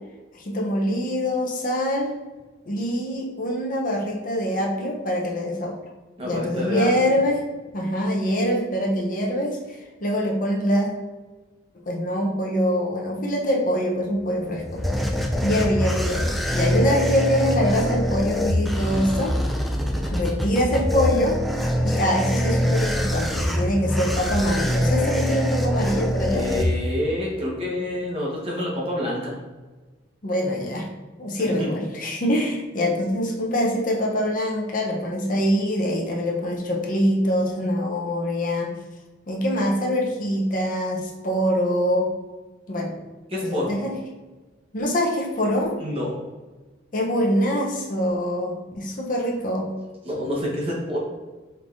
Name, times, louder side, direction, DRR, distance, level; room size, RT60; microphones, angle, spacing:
voice 1, 0.3-2.1 2.6-5.8 6.2-7.4 7.7-10.9 11.9-14.8 15.4-19.3 20.0-21.4 21.8-26.4 30.2-30.9 31.2-38.7 39.3-42.1 42.7-42.9 43.4-43.9 44.7-45.8 46.9-49.7, equal, 45° left, -1 dB, 0.7 m, -24 dB
voice 2, 6.2-7.2 26.3-29.4 31.4-31.7 43.3-43.8 45.8-46.2 50.0-51.0, left 1 dB, 30° right, -4 dB, 1.1 m, -28 dB
megatron growl, 14.2-27.2, equal, ahead, 0.3 m, -24 dB
5.2 x 3.3 x 2.6 m, 1.2 s
head